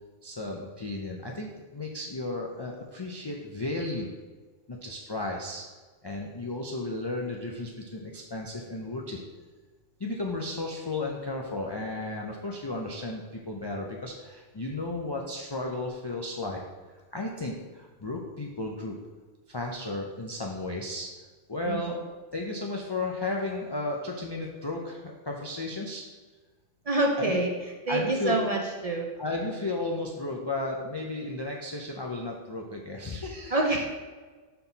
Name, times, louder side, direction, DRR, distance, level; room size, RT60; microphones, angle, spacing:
voice 1, 0.2-4.1 4.7-5.6 6.0-9.2 10.0-16.6 17.1-19.0 19.5-21.1 21.5-22.0 22.3-26.0 27.2-27.4 27.9-28.5 29.2-33.6, left 2 dB, 40° left, -1 dB, 0.3 m, -34 dB
voice 2, 21.7-22.0 26.9-27.5 27.9-29.1 33.5-33.9, right 2 dB, 45° right, 0 dB, 0.5 m, -26 dB
5.5 x 4.5 x 3.9 m, 1.4 s
omnidirectional pair, 1.2 m